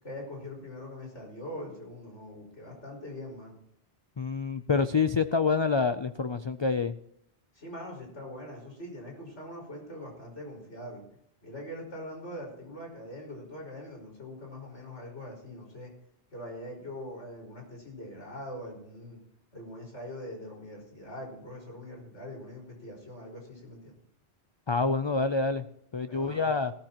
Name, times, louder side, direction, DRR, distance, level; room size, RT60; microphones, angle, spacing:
voice 1, 0.0-3.6 7.5-11.0 11.4-15.9 16.3-19.2 19.5-24.0 26.1-26.5, left 1 dB, 85° left, 0 dB, 5.5 m, -42 dB
voice 2, 4.2-7.0 24.7-25.6 25.9-26.7, left 4 dB, 50° left, 10 dB, 0.3 m, -27 dB
17.5 x 13.0 x 3.0 m, 0.71 s
omnidirectional pair, 1.2 m